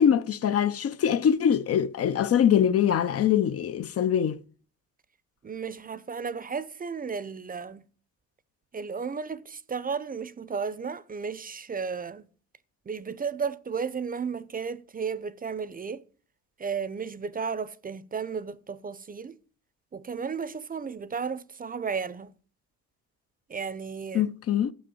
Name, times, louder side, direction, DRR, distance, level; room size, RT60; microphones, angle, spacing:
voice 1, 0.0-4.4 24.1-24.7, left 8 dB, 50° left, 0.6 m, -23 dB
voice 2, 5.4-7.8 8.7-12.3 12.9-16.0 16.6-19.4 19.9-22.3 23.5-24.3, right 5 dB, 30° right, 0.6 m, -34 dB
7.6 x 6.4 x 7.7 m
cardioid pair, 90°, 30 cm